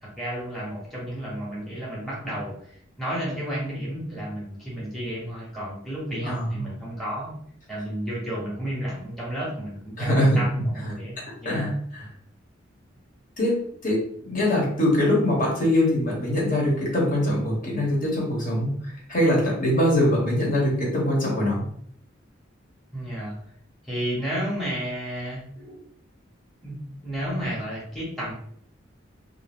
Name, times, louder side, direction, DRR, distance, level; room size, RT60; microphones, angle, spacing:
voice 1, 0.0-7.3 7.7-11.8 22.9-23.4 23.8-25.8 26.6-28.3, equal, ahead, -7 dB, 0.8 m, -32 dB
voice 2, 10.0-10.4 11.4-12.0 13.4-18.7 19.1-21.6, left 1 dB, 45° left, -3 dB, 0.9 m, -23 dB
2.4 x 2.0 x 3.4 m, 0.64 s
head